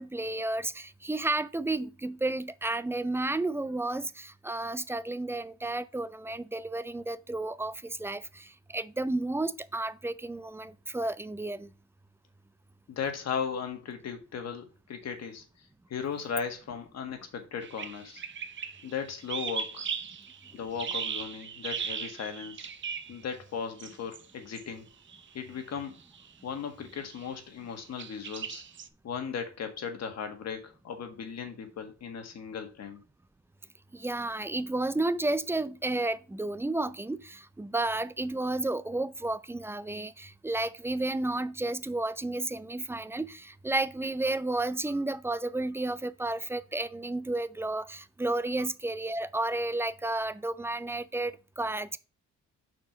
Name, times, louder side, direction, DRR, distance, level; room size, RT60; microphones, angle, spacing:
voice 1, 0.0-11.7 33.9-52.0, right 2 dB, 10° right, 0.4 m, -32 dB
voice 2, 12.9-15.4 15.9-18.2 18.8-19.9 20.5-22.7 23.1-24.9 25.3-26.0 26.4-28.6 29.0-33.0, left 6 dB, 60° left, 1.7 m, -37 dB
sound 1, 17.6-23.2 23.8-24.3 24.5-24.6 25.1-25.3 26.0-26.3 26.9-27.3 28.0-28.9, right 6 dB, 40° right, 0.7 m, -38 dB
6.0 x 4.5 x 4.8 m
cardioid pair, 90°, 30 cm